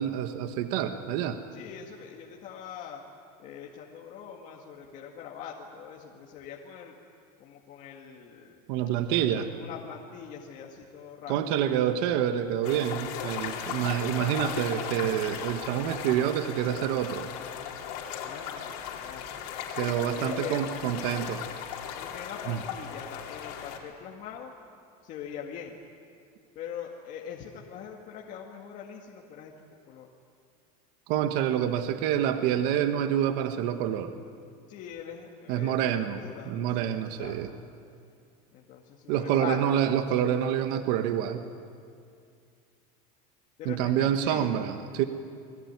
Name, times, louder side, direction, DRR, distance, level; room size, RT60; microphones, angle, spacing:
voice 1, 0.0-1.4 8.7-9.5 11.3-17.3 19.8-21.4 22.5-22.6 31.1-34.1 35.5-36.2 36.4-37.5 39.1-41.4 43.6-45.0, right 10 dB, 55° right, 7 dB, 1.4 m, -27 dB
voice 2, 1.5-3.0 3.4-7.0 7.4-8.6 9.0-11.3 13.5-14.4 18.2-19.3 20.2-20.6 22.0-24.5 25.0-25.8 26.6-30.1 34.7-37.6 38.5-40.0 43.6-44.5, left 8 dB, 40° left, -1 dB, 2.1 m, -42 dB
sound 1, 12.6-23.8, left 8 dB, 85° left, 4.4 m, -37 dB
29.5 x 21.0 x 9.6 m, 2.3 s
cardioid pair, 165°, 19 cm